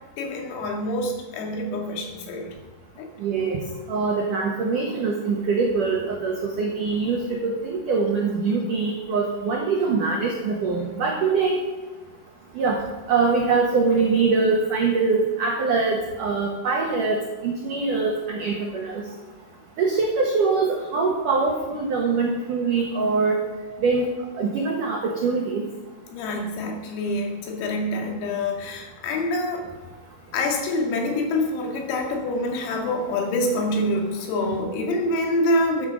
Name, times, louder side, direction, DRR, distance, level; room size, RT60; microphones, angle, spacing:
voice 1, 0.2-2.5 3.0-3.1 26.1-29.7 30.3-35.9, left 1 dB, 85° left, 1 dB, 4.9 m, -26 dB
voice 2, 3.2-3.6 3.9-11.6 12.5-19.0 19.8-23.4 23.8-24.1 24.4-25.6, right 4 dB, 75° right, 0 dB, 1.9 m, -23 dB
14.0 x 9.2 x 6.4 m, 1.3 s
omnidirectional pair, 5.9 m